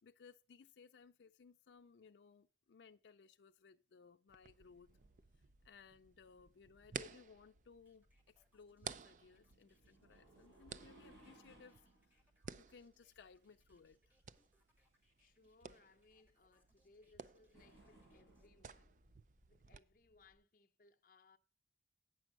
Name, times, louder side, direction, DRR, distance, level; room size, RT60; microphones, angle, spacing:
voice 1, 0.0-4.9 5.6-11.9 12.5-14.2, left 5 dB, 85° left, 0.4 m, -62 dB
sound 1, 4.3-19.8, right 6 dB, 45° right, 0.4 m, -55 dB
sound 2, 4.9-20.4, right 1 dB, 85° right, 6.2 m, -68 dB
sound 3, 7.9-18.5, left 1 dB, 10° right, 1.2 m, -80 dB
voice 2, 15.2-19.0 19.5-21.4, left 3 dB, 50° left, 0.7 m, -68 dB
9.0 x 6.3 x 5.9 m
head